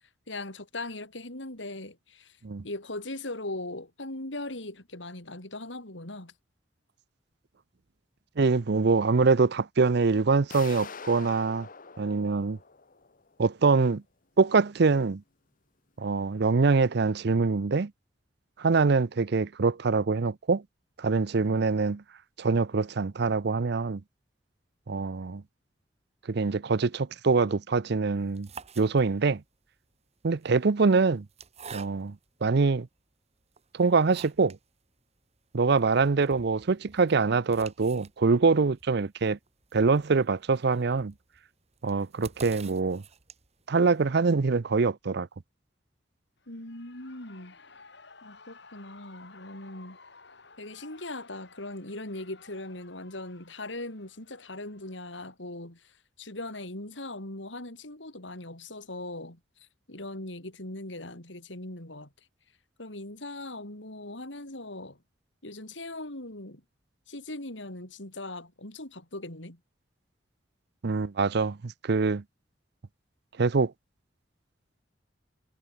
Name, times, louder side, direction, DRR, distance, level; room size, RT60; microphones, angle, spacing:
voice 1, 0.3-2.4 2.6-6.3 46.5-47.6 48.2-50.0 50.6-62.1 62.8-65.0 65.4-66.6 67.1-69.6, left 2 dB, 90° left, 5.2 m, -40 dB
voice 2, 8.4-11.7 12.0-12.6 13.4-14.0 14.4-15.2 16.0-17.9 18.6-20.6 21.0-22.0 22.4-24.0 24.9-25.4 26.3-28.5 28.8-29.4 30.2-31.3 31.7-32.1 32.4-32.9 33.7-34.6 35.5-39.4 39.7-41.1 41.8-43.0 43.7-45.3 70.8-72.2 73.4-73.7, right 4 dB, 65° right, 0.6 m, -24 dB
sound 1, 10.5-13.3, left 5 dB, 50° left, 1.8 m, -44 dB
sound 2, 28.2-29.4 30.3-32.3 32.9-33.0 33.5-34.7 35.0-35.1 35.3-35.4 35.8-43.7, right 5 dB, 35° right, 1.7 m, -49 dB
Shout / Cheering, 46.4-55.3, left 4 dB, 65° left, 5.8 m, -55 dB
head